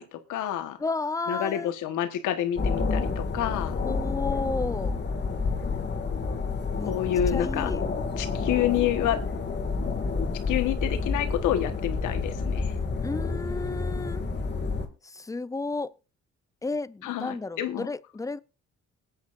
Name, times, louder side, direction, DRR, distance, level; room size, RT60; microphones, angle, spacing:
voice 1, 0.0-0.8 1.3-3.8 6.9-7.7 8.2-9.2 10.5-12.7 17.0-17.9, left 11 dB, 90° left, 1.4 m, -28 dB
voice 2, 0.8-1.7 3.8-5.0 6.8-6.9 7.3-7.9 13.0-14.2 15.0-15.9 16.6-18.4, left 3 dB, 10° left, 0.5 m, -32 dB
sound 1, 2.6-14.9, left 4 dB, 35° left, 2.0 m, -29 dB
20.5 x 8.8 x 2.5 m
cardioid pair, 90°, 30 cm